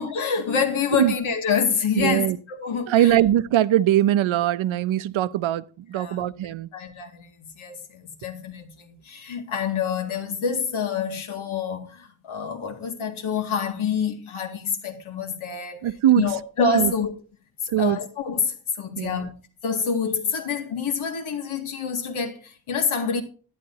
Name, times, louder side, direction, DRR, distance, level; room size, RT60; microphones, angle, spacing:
voice 1, 0.0-3.2 5.9-6.3 6.7-17.1 17.8-19.3 19.6-23.2, left 6 dB, 80° left, 2.2 m, -27 dB
voice 2, 2.0-2.4 2.9-6.7 15.8-16.2 16.7-16.9 17.7-18.0 19.0-19.3, right 12 dB, 75° right, 0.7 m, -21 dB
11.5 x 11.0 x 2.8 m
wide cardioid pair, 160°, 48 cm